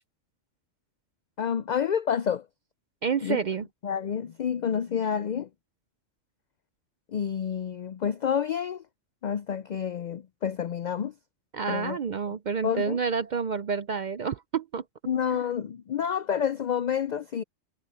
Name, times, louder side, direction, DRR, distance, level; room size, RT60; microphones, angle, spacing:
voice 1, 1.4-2.5 3.2-3.4 3.8-5.5 7.1-8.8 9.2-11.1 11.7-12.0 12.3-12.4 12.6-13.0 15.1-17.4, left 8 dB, 75° left, 0.4 m, -29 dB
voice 2, 3.0-3.6 11.5-14.8 15.3-15.4, right 6 dB, 55° right, 0.5 m, -29 dB
omnidirectional pair, 1.3 m